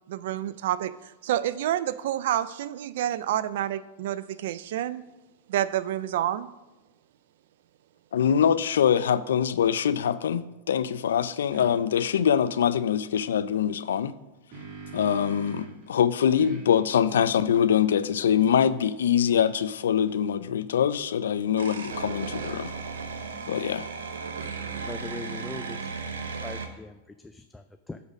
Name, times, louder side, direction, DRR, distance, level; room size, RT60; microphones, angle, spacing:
voice 1, 0.1-0.9 1.2-5.0 5.5-6.5, right 12 dB, 70° right, 0.4 m, -28 dB
voice 2, 8.1-14.1 14.9-22.7 23.5-23.9, left 8 dB, 80° left, 0.4 m, -24 dB
sound 1, 11.5-11.7 14.1-15.9 16.4-19.7, right 5 dB, 50° right, 2.8 m, -45 dB
sound 2, 21.6-26.7, right 5 dB, 85° right, 0.8 m, -35 dB
voice 3, 24.8-26.0 26.4-28.0, left 3 dB, 10° left, 0.4 m, -41 dB
8.0 x 4.0 x 6.2 m
hypercardioid pair, 110°, 0 cm